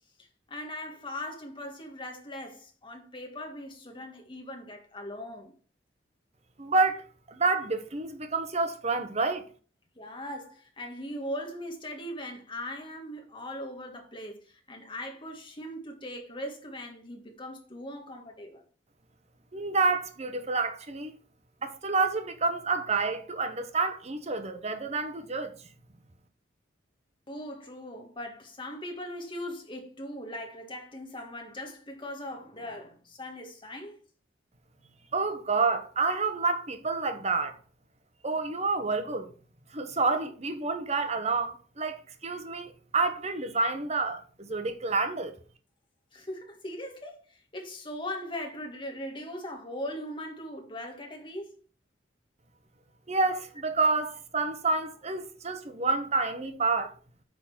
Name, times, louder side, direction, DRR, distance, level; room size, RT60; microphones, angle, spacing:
voice 1, 0.5-5.5 9.9-18.6 27.3-34.0 46.1-51.6, left 1 dB, 25° left, 1.8 m, -40 dB
voice 2, 6.6-7.0 7.3-9.4 19.5-21.1 21.6-25.5 35.1-37.6 38.2-39.3 39.7-45.3 53.1-56.9, right 3 dB, 35° right, 1.0 m, -28 dB
8.4 x 3.9 x 6.2 m
head